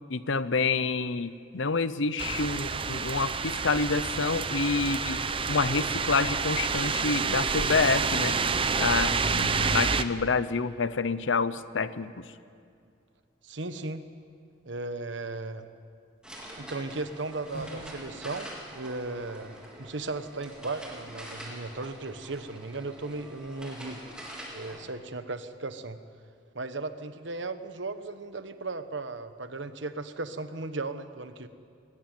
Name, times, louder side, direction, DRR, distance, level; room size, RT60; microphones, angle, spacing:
voice 1, 0.1-5.2 5.5-8.4 8.8-12.2, left 4 dB, 80° left, 14 dB, 0.9 m, -28 dB
sound 1, 2.2-10.0, right 5 dB, 30° right, 0.7 m, -28 dB
voice 2, 13.4-14.0 14.7-15.7 16.6-24.0 24.5-26.0 26.5-31.5, right 3 dB, 70° right, 10 dB, 1.2 m, -36 dB
sound 2, 16.2-24.8, equal, 5° right, 4.3 m, -45 dB
sound 3, 17.5-18.1, equal, 55° left, 7.2 m, -42 dB
21.0 x 20.0 x 9.2 m, 2.3 s
head